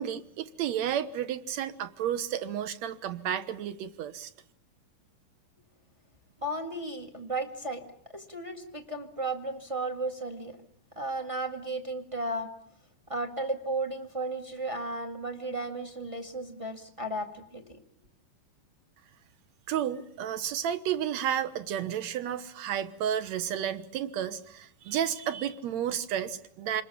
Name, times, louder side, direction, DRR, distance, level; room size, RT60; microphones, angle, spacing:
voice 1, 0.0-4.3 19.7-26.8, right 10 dB, 65° right, 12 dB, 2.1 m, -32 dB
voice 2, 6.4-7.8 8.1-10.6 10.9-12.5 13.1-17.8, right 2 dB, 25° right, 4 dB, 0.6 m, -34 dB
27.5 x 21.0 x 7.0 m, 0.66 s
omnidirectional pair, 4.1 m